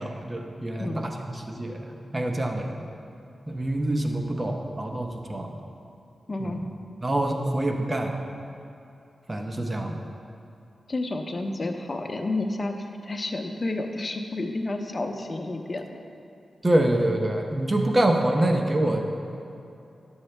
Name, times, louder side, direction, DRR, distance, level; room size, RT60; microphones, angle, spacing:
voice 1, 0.0-1.8 2.1-2.7 3.5-5.5 6.4-6.6 7.0-8.1 9.3-10.0 16.6-19.2, right 1 dB, 30° right, 3 dB, 0.9 m, -26 dB
voice 2, 0.8-1.1 6.3-6.7 10.9-16.0, left 2 dB, 40° left, 4 dB, 0.8 m, -30 dB
10.5 x 7.2 x 3.3 m, 2.7 s
cardioid pair, 65°, 0 cm